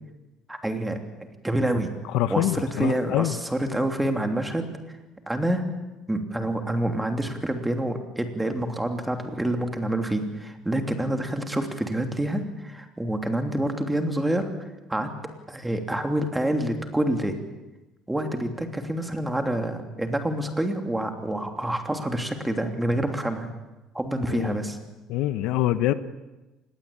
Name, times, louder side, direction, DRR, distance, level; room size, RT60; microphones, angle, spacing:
voice 1, 0.5-1.9 2.3-4.7 5.3-5.7 6.1-14.4 14.9-15.1 15.5-17.4 18.1-23.5 23.9-24.8, right 1 dB, 5° right, 5 dB, 3.1 m, -27 dB
voice 2, 2.1-3.4 24.3-24.6 25.1-25.9, left 13 dB, 75° left, 12 dB, 1.1 m, -25 dB
26.0 x 20.5 x 8.8 m, 1.1 s
cardioid pair, 130°, 0 cm